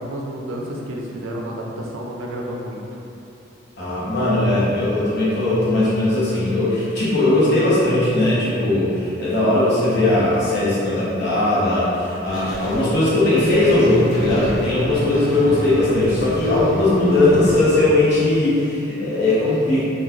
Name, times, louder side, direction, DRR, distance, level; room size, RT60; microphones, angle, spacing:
voice 1, 0.0-3.0 15.4-15.6, equal, 85° right, -1 dB, 0.4 m, -31 dB
voice 2, 3.8-19.8, left 2 dB, 55° left, -10 dB, 0.8 m, -18 dB
sound 1, 12.3-17.8, equal, 85° left, 0.6 m, -31 dB
3.0 x 2.2 x 2.4 m, 2.8 s
head